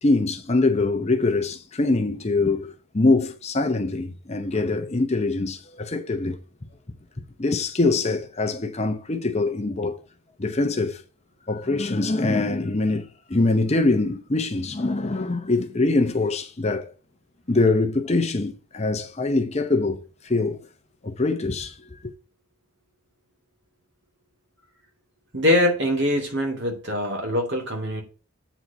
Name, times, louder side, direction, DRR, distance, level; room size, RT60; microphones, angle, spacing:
voice 1, 0.0-6.4 7.4-10.0 10.4-11.0 11.5-16.9 17.5-20.6 21.0-22.1, left 3 dB, 30° left, 0.7 m, -23 dB
voice 2, 25.3-28.0, left 1 dB, 55° right, 2.4 m, -23 dB
8.0 x 4.4 x 6.9 m
head